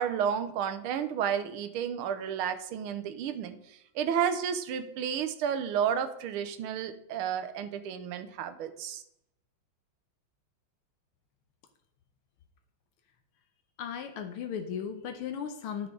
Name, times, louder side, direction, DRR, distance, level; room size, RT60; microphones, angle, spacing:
voice 1, 0.0-9.0, right 8 dB, 85° right, 10 dB, 1.6 m, -31 dB
voice 2, 13.8-15.9, left 7 dB, 85° left, 6 dB, 1.7 m, -36 dB
10.5 x 6.0 x 3.9 m, 0.77 s
omnidirectional pair, 2.3 m